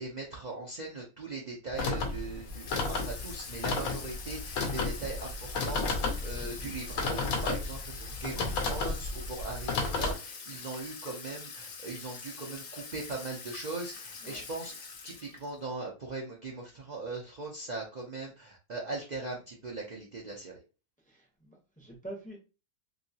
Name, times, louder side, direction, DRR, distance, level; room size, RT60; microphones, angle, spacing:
voice 1, 0.0-14.7 15.0-20.6, right 3 dB, 50° right, 0.5 m, -40 dB
sound 1, 1.8-10.1, left 3 dB, 80° left, 1.1 m, -33 dB
Water tap faucet / Sink (filling or washing), 2.5-15.6, left 5 dB, 55° left, 0.6 m, -45 dB
voice 2, 6.4-6.7 14.2-14.4 21.0-22.4, right 2 dB, 10° left, 0.6 m, -47 dB
3.0 x 2.7 x 2.7 m
omnidirectional pair, 1.5 m